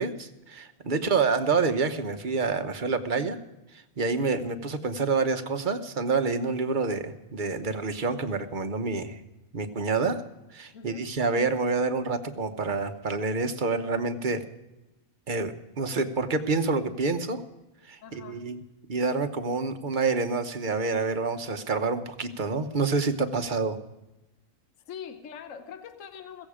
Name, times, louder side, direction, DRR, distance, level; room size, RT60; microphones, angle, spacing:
voice 1, 0.0-3.4 3.7-9.2 9.5-10.2 10.5-14.4 15.3-17.4 17.8-18.6 18.9-23.8, right 4 dB, 40° right, 8 dB, 1.0 m, -28 dB
voice 2, 10.7-11.1 18.0-18.5 24.9-26.5, left 7 dB, 60° left, 8 dB, 1.3 m, -43 dB
16.0 x 15.5 x 5.0 m, 0.97 s
omnidirectional pair, 1.5 m